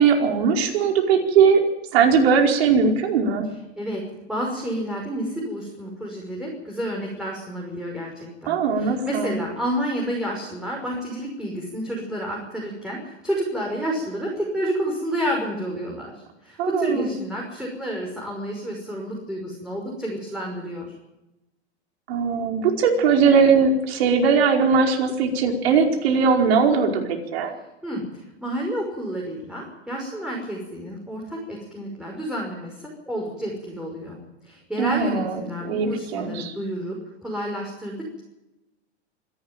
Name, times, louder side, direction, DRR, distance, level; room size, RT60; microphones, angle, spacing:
voice 1, 0.0-1.6 1.9-3.5 8.5-9.4 16.6-17.1 22.1-27.0 27.3-27.5 34.8-35.4 35.6-36.5, right 5 dB, 65° right, 3 dB, 4.9 m, -19 dB
voice 2, 4.3-16.1 16.4-20.9 27.8-28.0 28.4-34.2 34.4-38.2, equal, ahead, -2 dB, 6.0 m, -30 dB
26.5 x 12.0 x 9.2 m, 0.96 s
hypercardioid pair, 120°, 34 cm